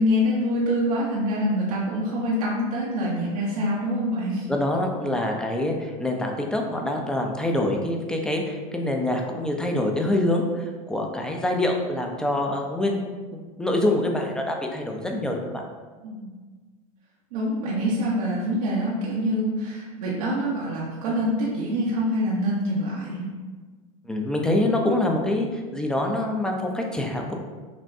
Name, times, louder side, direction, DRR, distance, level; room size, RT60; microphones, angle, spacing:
voice 1, 0.0-4.5 16.0-16.4 17.3-23.3, equal, 80° right, -6 dB, 0.9 m, -25 dB
voice 2, 4.5-13.0 13.3-15.6 24.1-27.3, left 1 dB, 5° left, 2 dB, 0.5 m, -25 dB
6.0 x 2.1 x 2.6 m, 1.4 s
supercardioid pair, 110°, 19 cm